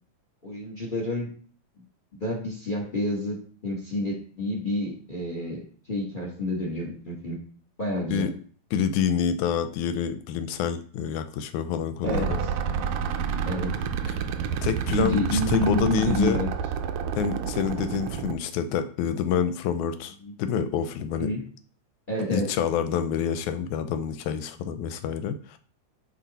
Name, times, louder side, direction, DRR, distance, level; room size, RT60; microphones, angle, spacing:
voice 1, 0.4-1.3 2.1-5.6 5.9-7.4 7.8-8.3 12.0-12.3 13.4-13.7 14.9-16.5 20.2-20.3 21.2-21.4 22.1-22.5, left 1 dB, 30° left, -2 dB, 0.9 m, -28 dB
voice 2, 8.7-12.4 14.1-14.2 14.6-16.4 17.2-21.3 22.3-25.6, left 8 dB, 90° left, 10 dB, 2.1 m, -27 dB
sound 1, 12.1-18.3, right 7 dB, 80° right, 1.3 m, -29 dB
9.5 x 3.5 x 4.1 m, 0.43 s
omnidirectional pair, 3.3 m